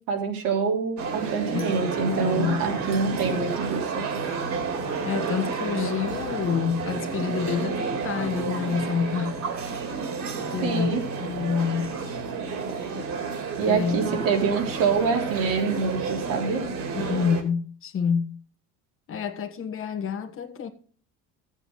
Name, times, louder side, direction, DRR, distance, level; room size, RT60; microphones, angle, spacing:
voice 1, 0.1-4.0 10.6-11.0 13.6-16.6, right 5 dB, 80° right, 3.5 m, -26 dB
sound 1, 1.0-17.4, right 4 dB, 55° right, 3.0 m, -31 dB
voice 2, 2.2-2.6 5.0-9.5 10.5-11.9 13.7-14.2 16.9-18.4 19.1-20.7, left 6 dB, 40° left, 1.4 m, -28 dB
14.0 x 8.1 x 3.9 m
cardioid pair, 125°, 32 cm